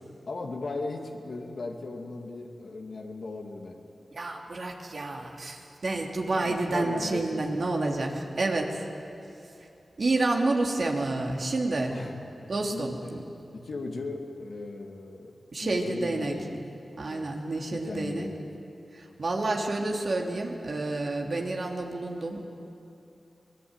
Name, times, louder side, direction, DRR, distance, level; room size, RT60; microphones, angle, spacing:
voice 1, 0.0-3.8 6.4-7.4 11.9-13.2 13.5-15.3 15.6-16.6 17.0-17.3 17.7-18.4, left 3 dB, 75° left, 1 dB, 2.2 m, -37 dB
voice 2, 4.1-8.9 10.0-12.0 12.5-13.2 15.5-16.4 17.0-18.3 18.9-22.4, right 2 dB, 65° right, 1 dB, 3.0 m, -29 dB
24.5 x 19.0 x 8.9 m, 2.7 s
cardioid pair, 50°, 0 cm